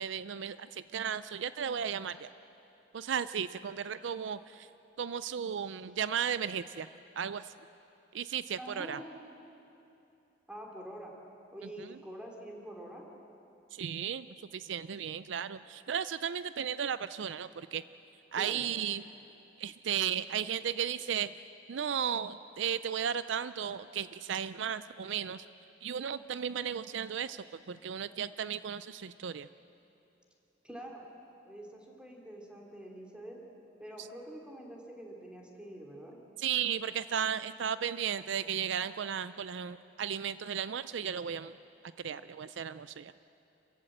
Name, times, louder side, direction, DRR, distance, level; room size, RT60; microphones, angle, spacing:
voice 1, 0.0-2.3 2.9-4.7 5.0-6.9 7.2-7.5 8.1-9.0 11.8-11.9 13.7-17.8 18.3-19.0 19.6-21.3 21.7-25.5 25.8-29.5 36.4-41.5 42.0-43.1, right 8 dB, 70° right, 14 dB, 0.4 m, -35 dB
voice 2, 8.6-9.2 10.5-11.1 11.5-13.1 18.4-18.6 30.6-31.0 31.4-33.4 33.8-36.2, right 1 dB, 5° right, -1 dB, 2.9 m, -46 dB
28.0 x 15.0 x 7.9 m, 2.8 s
head